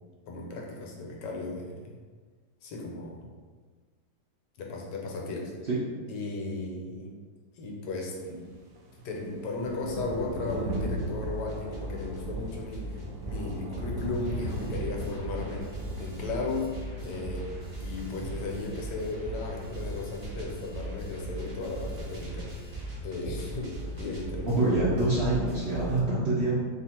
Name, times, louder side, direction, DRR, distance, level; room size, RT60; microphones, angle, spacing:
voice 1, 0.3-2.0 2.6-3.3 4.6-5.5 6.1-7.1 7.5-8.4 8.9-16.7 17.0-22.7 23.0-24.8, left 3 dB, 80° left, 0 dB, 1.3 m, -36 dB
sound 1, 8.2-25.6, right 1 dB, 70° right, 1.1 m, -40 dB
sound 2, 10.5-26.0, right 1 dB, 35° right, 0.3 m, -39 dB
voice 2, 24.5-26.6, right 2 dB, 85° right, -7 dB, 0.5 m, -25 dB
2.9 x 2.4 x 4.2 m, 1.5 s
omnidirectional pair, 1.9 m